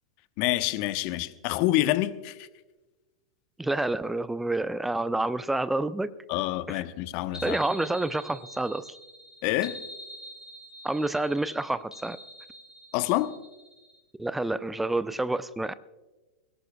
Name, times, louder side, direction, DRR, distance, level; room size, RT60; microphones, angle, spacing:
voice 1, 0.4-2.5 6.3-7.6 9.4-9.8 12.9-13.3, left 16 dB, 45° left, 13 dB, 0.9 m, -27 dB
voice 2, 3.6-6.1 6.7-6.8 7.4-8.9 10.8-12.2 14.2-15.7, right 2 dB, 5° right, 16 dB, 0.5 m, -28 dB
sound 1, 7.3-14.0, equal, 85° left, 3.0 m, -45 dB
21.5 x 18.0 x 2.3 m, 1.1 s
figure-of-eight pair, 95°, 3 cm